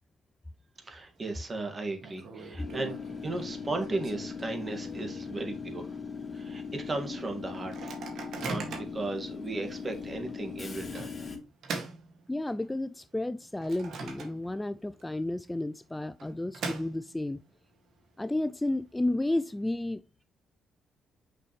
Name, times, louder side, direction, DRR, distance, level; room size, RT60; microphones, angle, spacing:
voice 1, 0.8-6.0 6.3-7.9 8.4-11.1, right 2 dB, 30° right, 2.0 m, -36 dB
Microwave oven, 0.8-1.3 1.6-1.7 2.0-5.1 5.5-5.6 5.9-6.2 6.7-6.8 7.5-9.1 9.7-9.8 10.9-12.8 13.2-14.7 15.0-15.1 16.0-17.4, right 4 dB, 70° right, 2.1 m, -41 dB
Train / Subway metro underground, 2.6-11.4, left 5 dB, 25° left, 2.4 m, -40 dB
voice 2, 12.3-17.4 18.2-20.0, left 1 dB, 10° left, 0.3 m, -32 dB
6.6 x 5.5 x 3.2 m
cardioid pair, 90°, 0 cm